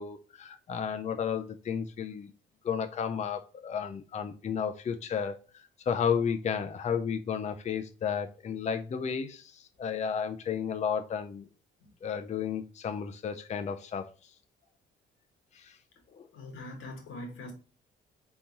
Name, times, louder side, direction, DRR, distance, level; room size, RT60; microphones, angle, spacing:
voice 1, 0.0-2.3 2.6-11.5 12.0-14.1 15.5-15.8 16.1-16.3, left 7 dB, 35° left, 0.5 m, -33 dB
voice 2, 16.3-17.5, left 2 dB, 90° left, 1.7 m, -42 dB
4.0 x 3.7 x 2.8 m
cardioid pair, 90°, 20 cm